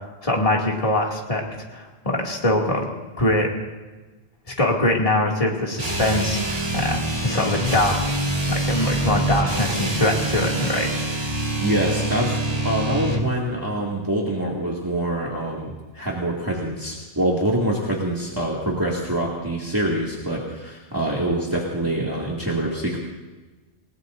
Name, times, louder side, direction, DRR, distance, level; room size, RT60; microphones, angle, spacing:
voice 1, 0.2-1.4 1.7-2.9 3.2-3.5 4.6-8.2 8.5-10.9, left 1 dB, 30° left, -2 dB, 2.5 m, -23 dB
sound 1, 5.8-13.3, right 1 dB, 35° right, 2.0 m, -25 dB
voice 2, 11.6-23.0, right 1 dB, 20° right, -4 dB, 2.3 m, -25 dB
28.5 x 19.5 x 2.6 m, 1.2 s
omnidirectional pair, 1.1 m